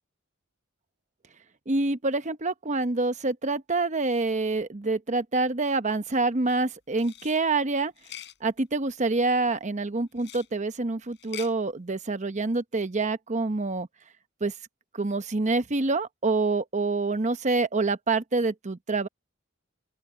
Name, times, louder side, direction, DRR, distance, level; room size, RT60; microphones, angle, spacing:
voice 1, 1.7-7.9 8.4-13.9 14.4-14.5 14.9-19.1, right 3 dB, 35° right, 0.9 m, -26 dB
sound 1, 6.9-7.4 8.0-8.4 10.2-10.5 11.1-11.5, left 12 dB, 60° left, 4.9 m, -43 dB
open air
head